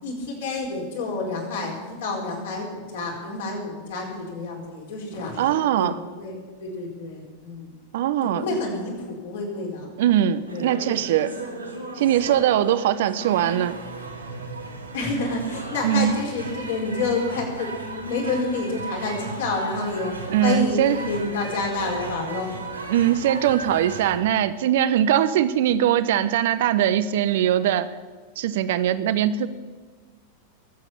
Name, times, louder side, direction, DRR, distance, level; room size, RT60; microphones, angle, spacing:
voice 1, 0.0-5.9 6.2-7.7 8.3-9.9 10.5-10.7 14.9-20.1 20.4-22.5, left 3 dB, 55° left, 0 dB, 4.5 m, -29 dB
voice 2, 5.4-6.0 7.9-8.4 10.0-11.3 12.0-13.8 15.8-16.2 20.3-21.0 22.9-27.9 28.4-29.5, right 10 dB, 55° right, 14 dB, 0.9 m, -21 dB
sound 1, 10.5-24.2, right 2 dB, 85° right, 2.4 m, -36 dB
22.0 x 8.1 x 7.1 m, 1.5 s
figure-of-eight pair, 90°, 0 cm